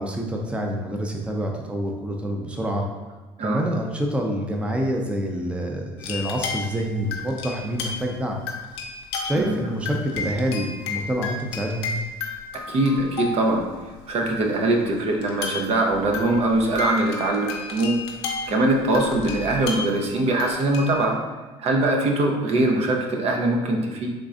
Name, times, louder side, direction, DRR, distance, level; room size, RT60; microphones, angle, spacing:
voice 1, 0.0-2.8 3.4-8.4 9.2-11.9, equal, 10° right, 1 dB, 0.5 m, -27 dB
sound 1, 6.0-8.1 8.5-9.6 9.8-13.7 14.3-14.4 15.2-21.1, left 4 dB, 85° left, 0.6 m, -33 dB
voice 2, 12.7-13.7 14.1-18.0 18.5-21.2 21.6-24.1, right 2 dB, 50° right, 1 dB, 0.6 m, -22 dB
3.7 x 3.2 x 2.5 m, 1.2 s
supercardioid pair, 75°, 13 cm